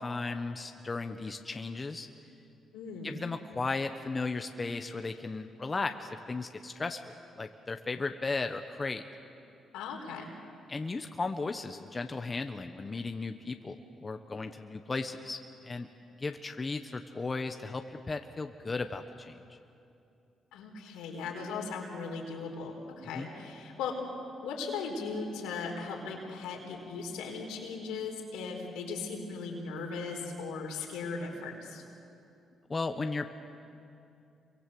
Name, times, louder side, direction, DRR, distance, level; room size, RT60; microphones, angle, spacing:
voice 1, 0.0-2.1 3.0-7.0 7.4-9.0 10.7-13.8 14.0-15.4 15.6-15.9 16.2-19.4 23.1-23.3 32.7-33.3, left 3 dB, 30° left, 6 dB, 1.2 m, -35 dB
voice 2, 2.7-3.2 9.7-10.3 20.5-24.0 24.4-31.8, left 4 dB, 90° left, 1 dB, 4.4 m, -38 dB
27.5 x 24.0 x 7.8 m, 2.6 s
supercardioid pair, 65°, 0 cm